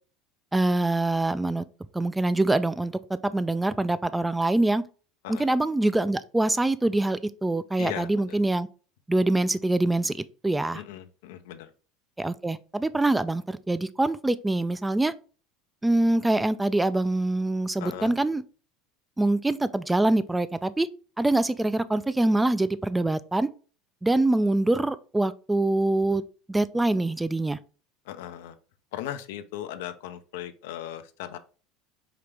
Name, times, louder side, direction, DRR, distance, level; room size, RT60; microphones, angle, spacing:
voice 1, 0.5-1.6 1.9-4.8 5.3-8.7 9.1-10.8 12.2-15.1 15.8-18.4 19.2-20.9 21.2-23.5 24.0-26.2 26.5-27.6, right 2 dB, 10° right, 0.3 m, -24 dB
voice 2, 7.8-8.4 10.7-11.7 17.8-18.2 28.1-28.6 28.9-31.4, left 11 dB, 75° left, 0.5 m, -38 dB
4.9 x 2.9 x 3.3 m
hypercardioid pair, 90°, 0 cm